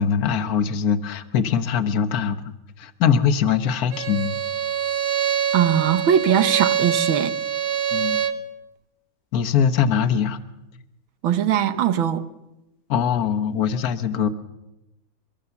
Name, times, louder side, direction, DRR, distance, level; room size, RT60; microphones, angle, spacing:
voice 1, 0.0-2.4 2.8-4.4 7.9-8.2 9.3-10.4 12.9-14.3, left 7 dB, 55° left, 1.5 m, -22 dB
Bowed string instrument, 3.9-8.4, right 8 dB, 60° right, 1.7 m, -24 dB
voice 2, 5.5-7.4 11.2-12.2, right 9 dB, 90° right, 1.9 m, -20 dB
23.5 x 23.0 x 7.1 m
omnidirectional pair, 2.1 m